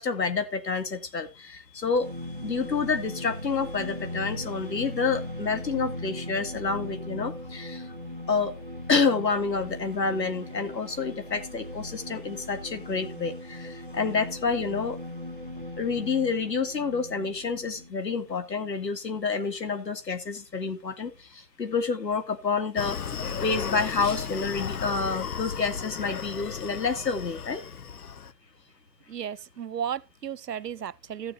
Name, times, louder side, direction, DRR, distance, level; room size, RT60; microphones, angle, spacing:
voice 1, 0.0-2.1 2.4-7.9 8.3-8.5 8.9-15.0 15.8-23.0 23.4-27.6, left 4 dB, 80° left, 2.5 m, -28 dB
sound 1, 2.0-18.4, left 1 dB, 35° right, 0.5 m, -39 dB
Screaming, 22.8-28.3, left 6 dB, 65° left, 0.8 m, -35 dB
voice 2, 29.1-31.3, right 8 dB, 75° right, 0.7 m, -34 dB
15.0 x 7.0 x 2.6 m
hypercardioid pair, 175°, 49 cm